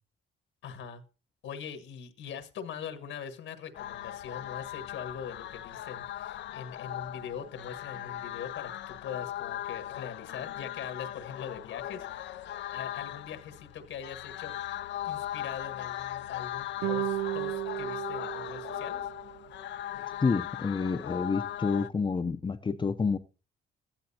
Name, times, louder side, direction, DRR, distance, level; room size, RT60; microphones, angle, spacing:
voice 1, 0.6-1.0 1.4-12.4 12.7-14.6 15.0-19.1, left 7 dB, 80° left, 1.5 m, -42 dB
sound 1, 3.7-21.9, left 13 dB, 65° left, 0.5 m, -39 dB
sound 2, 16.8-19.4, right 14 dB, 85° right, 0.5 m, -34 dB
voice 2, 20.2-23.2, left 4 dB, 25° left, 0.6 m, -29 dB
14.5 x 10.5 x 2.8 m
cardioid pair, 90°, 20 cm